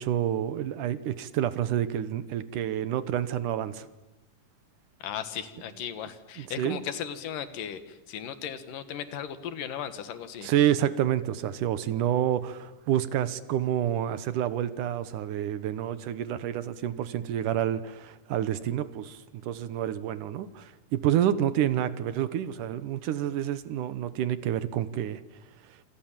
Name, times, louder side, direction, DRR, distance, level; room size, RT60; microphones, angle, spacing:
voice 1, 0.0-3.9 6.4-6.8 10.4-25.2, right 11 dB, 75° right, 14 dB, 2.6 m, -28 dB
voice 2, 5.0-10.5, left 9 dB, 85° left, 11 dB, 3.2 m, -36 dB
28.0 x 27.0 x 7.5 m, 1.0 s
omnidirectional pair, 3.7 m